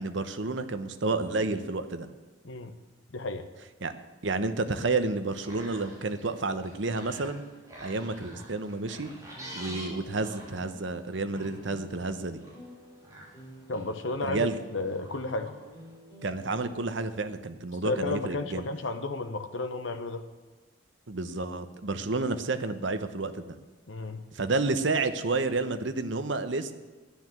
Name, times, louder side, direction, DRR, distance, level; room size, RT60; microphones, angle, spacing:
voice 1, 0.0-2.1 3.8-3.9 4.2-7.4 7.8-9.1 9.5-12.4 14.2-14.6 16.2-18.6 21.1-23.5 24.3-26.7, right 3 dB, 70° right, 10 dB, 0.9 m, -30 dB
voice 2, 3.1-3.5 13.7-15.5 17.8-20.2 23.9-24.2, left 2 dB, 75° left, 7 dB, 0.9 m, -33 dB
sound 1, 5.2-16.0, equal, 15° right, 3.0 m, -48 dB
sound 2, 9.4-17.4, equal, 20° left, 3.0 m, -51 dB
10.5 x 9.5 x 7.7 m, 1.3 s
head